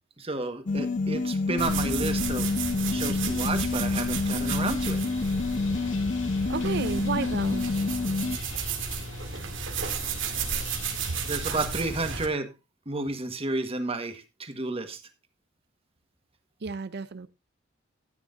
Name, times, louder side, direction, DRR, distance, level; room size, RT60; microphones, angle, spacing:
voice 1, 0.2-2.6 2.9-5.0 11.2-12.5 12.8-15.0, right 2 dB, 30° right, 1.5 m, -31 dB
sound 1, 0.7-8.4, left 3 dB, 40° left, 0.5 m, -28 dB
sound 2, 1.6-12.3, right 5 dB, 70° right, 2.0 m, -33 dB
sound 3, 2.0-11.7, left 3 dB, 75° left, 2.3 m, -46 dB
voice 2, 6.5-7.7 16.6-17.3, right 4 dB, 55° right, 0.6 m, -31 dB
13.5 x 9.7 x 2.6 m
head